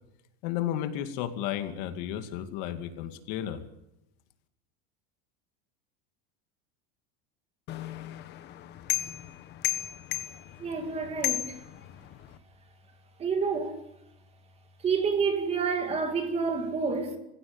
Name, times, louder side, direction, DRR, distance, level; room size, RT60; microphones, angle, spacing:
voice 1, 0.4-3.6, left 11 dB, 55° left, 2.5 m, -33 dB
sound 1, 7.7-12.4, left 15 dB, 35° left, 1.4 m, -35 dB
voice 2, 10.6-11.5 13.2-13.8 14.8-17.2, right 5 dB, 20° right, 2.4 m, -28 dB
26.5 x 16.0 x 7.2 m
cardioid pair, 175°, 31 cm